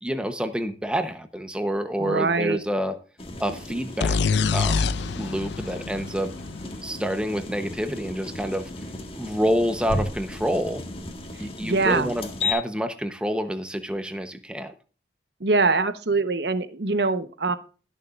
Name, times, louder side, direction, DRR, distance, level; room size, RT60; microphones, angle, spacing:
voice 1, 0.0-3.0 3.4-6.3 6.6-8.7 9.2-10.8 11.4-14.7, equal, 5° right, 8 dB, 0.9 m, -28 dB
voice 2, 2.0-2.6 11.6-12.1 15.4-17.6, right 3 dB, 75° right, 10 dB, 1.1 m, -23 dB
sound 1, 3.2-12.5, left 2 dB, 30° left, 1.6 m, -35 dB
sound 2, 4.0-7.7, left 5 dB, 80° left, 0.5 m, -26 dB
20.5 x 6.8 x 2.5 m, 0.36 s
head